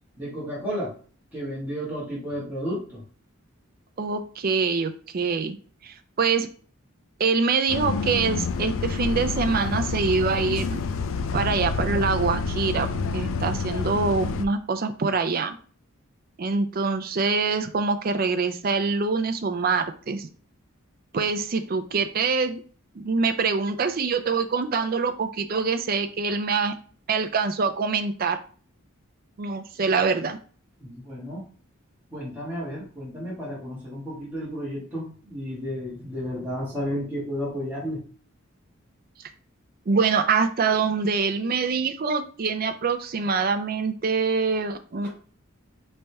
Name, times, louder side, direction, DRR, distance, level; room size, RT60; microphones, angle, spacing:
voice 1, 0.2-0.9 1.3-3.0 30.8-31.5 32.1-38.0 45.0-45.1, equal, 10° right, -8 dB, 1.7 m, -32 dB
voice 2, 4.0-5.6 5.8-6.5 7.2-10.8 11.3-12.9 13.1-15.6 16.4-20.3 21.1-22.6 23.0-26.7 27.1-28.4 29.4-30.4 39.9-45.1, right 4 dB, 45° right, 8 dB, 0.4 m, -25 dB
Bus, 7.7-14.4, left 4 dB, 65° left, 0.4 m, -28 dB
4.0 x 3.3 x 3.4 m, 0.42 s
head